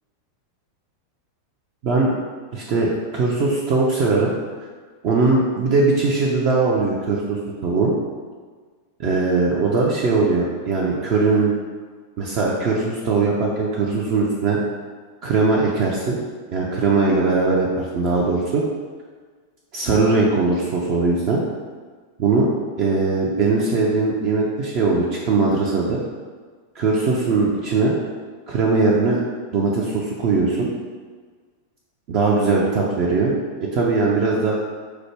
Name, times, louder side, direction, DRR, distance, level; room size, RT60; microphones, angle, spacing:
voice 1, 1.8-2.1 2.5-4.3 5.0-7.9 9.0-11.5 12.2-14.6 15.2-16.2 16.5-18.6 19.7-21.4 22.2-22.5 22.8-26.0 26.8-27.9 28.5-29.2 29.5-30.7 32.1-33.3 33.6-34.6, right 3 dB, 45° right, -3 dB, 0.5 m, -20 dB
4.8 x 2.1 x 3.2 m, 1.5 s
figure-of-eight pair, 90°, 0 cm